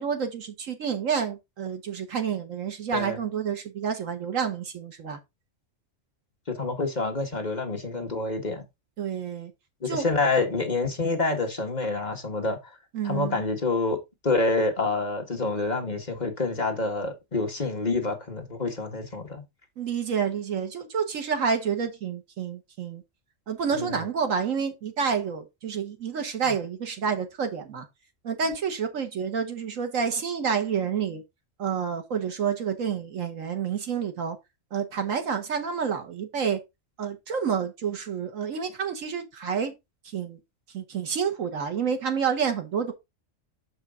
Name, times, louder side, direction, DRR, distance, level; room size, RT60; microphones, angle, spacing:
voice 1, 0.0-5.2 9.0-9.5 9.8-10.1 12.9-13.4 19.8-23.0 23.5-27.9 28.2-31.2 31.6-34.4 34.7-36.6 37.0-39.7 40.1-40.4 40.7-42.9, right 6 dB, 80° right, 1.6 m, -29 dB
voice 2, 6.5-8.6 9.8-12.6 13.0-14.0 14.2-19.4 23.8-24.0, left 3 dB, 35° left, 1.4 m, -27 dB
6.5 x 5.2 x 3.6 m
omnidirectional pair, 1.3 m